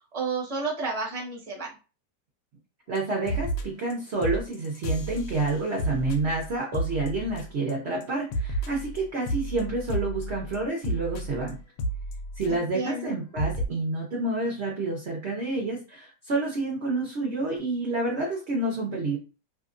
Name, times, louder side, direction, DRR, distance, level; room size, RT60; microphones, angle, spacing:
voice 1, 0.1-1.7 12.5-13.1, right 4 dB, 25° right, -3 dB, 0.9 m, -31 dB
sound 1, 2.9-3.0 3.3-3.9 4.2-7.7 8.0-12.8 13.1-13.2 13.4-13.7, right 1 dB, 70° left, 1.0 m, -32 dB
voice 2, 2.9-11.6 12.4-19.2, right 2 dB, 55° right, -2 dB, 0.8 m, -29 dB
2.8 x 2.4 x 2.5 m, 0.33 s
omnidirectional pair, 1.9 m